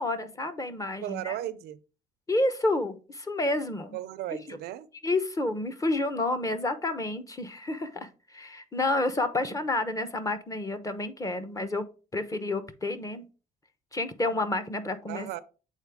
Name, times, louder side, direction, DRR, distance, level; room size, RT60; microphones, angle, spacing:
voice 1, 0.0-1.4 2.3-4.0 4.5-4.6 5.0-11.9 12.1-13.3 13.9-15.4, left 2 dB, 20° left, 0.8 m, -30 dB
voice 2, 1.0-1.8 3.9-4.9 15.1-15.4, right 13 dB, 75° right, 0.6 m, -35 dB
8.2 x 3.9 x 3.5 m
cardioid pair, 110°, 17 cm